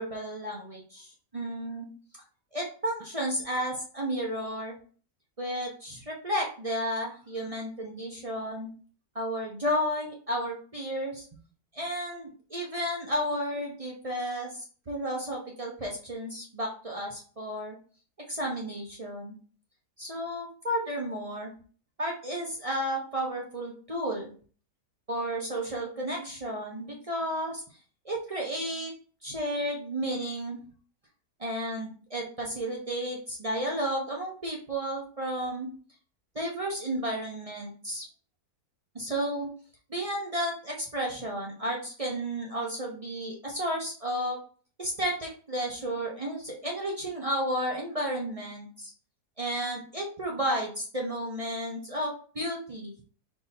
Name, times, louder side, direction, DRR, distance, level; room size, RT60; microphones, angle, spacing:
voice 1, 0.0-1.9 2.5-4.8 5.4-8.7 9.1-11.2 11.7-14.6 14.9-17.8 18.3-19.4 20.0-21.5 22.0-24.3 25.1-27.6 28.0-28.9 29.2-30.6 31.4-35.7 36.3-38.0 38.9-39.5 39.9-44.4 44.8-48.9 49.4-52.9, equal, 35° right, -1 dB, 0.6 m, -32 dB
4.6 x 2.8 x 4.1 m, 0.42 s
omnidirectional pair, 1.7 m